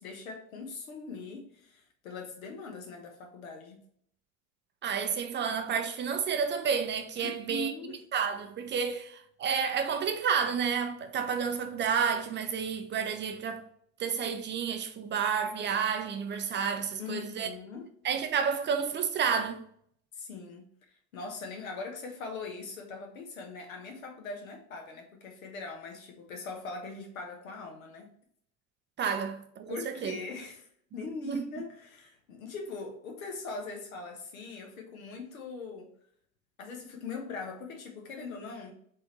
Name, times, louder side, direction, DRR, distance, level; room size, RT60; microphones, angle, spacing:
voice 1, 0.0-3.8 7.2-8.0 17.0-17.9 20.1-28.1 29.7-35.9 36.6-38.7, left 4 dB, 75° left, 1.1 m, -41 dB
voice 2, 4.8-7.7 8.1-13.6 14.0-17.5 18.0-19.6 29.0-30.2 31.2-31.4, right 6 dB, 30° right, 0.5 m, -30 dB
3.7 x 3.4 x 4.1 m
figure-of-eight pair, 65°, 41 cm